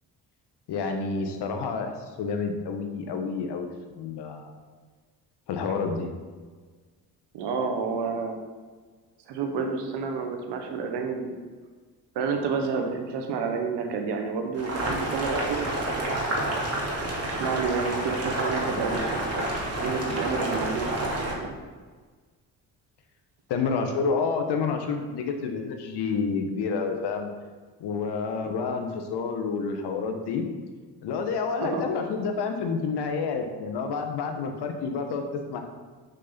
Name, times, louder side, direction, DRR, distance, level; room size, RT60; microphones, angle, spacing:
voice 1, 0.7-4.5 5.5-6.1 23.5-27.3 27.8-30.5 31.0-35.6, left 5 dB, 80° left, 5 dB, 1.3 m, -29 dB
voice 2, 7.3-8.4 9.3-11.3 12.1-16.7 17.2-19.5 19.7-21.6 28.5-28.6 31.6-31.8, right 5 dB, 85° right, 4 dB, 1.3 m, -30 dB
Boiling, 14.5-21.3, right 1 dB, 40° right, 2.7 m, -29 dB
6.8 x 6.4 x 5.9 m, 1.4 s
supercardioid pair, 60°, 40 cm